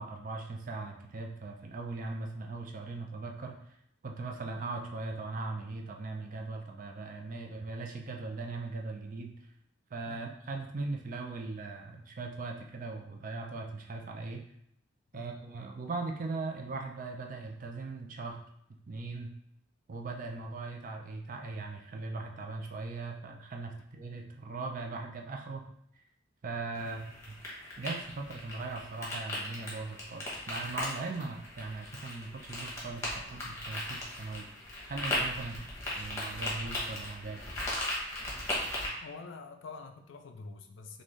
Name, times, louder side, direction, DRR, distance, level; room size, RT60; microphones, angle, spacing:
voice 1, 0.0-3.6 4.0-9.3 9.9-14.4 15.1-18.4 18.9-19.3 19.9-25.6 26.4-27.0 27.3-27.4 27.8-34.5 34.9-35.6 36.0-37.4, right 3 dB, 40° right, 3 dB, 0.4 m, -39 dB
sound 1, 26.8-38.9, left 1 dB, 15° left, 0.9 m, -38 dB
voice 2, 39.0-41.0, left 4 dB, 65° left, 6 dB, 0.4 m, -47 dB
3.8 x 2.5 x 3.1 m, 0.75 s
head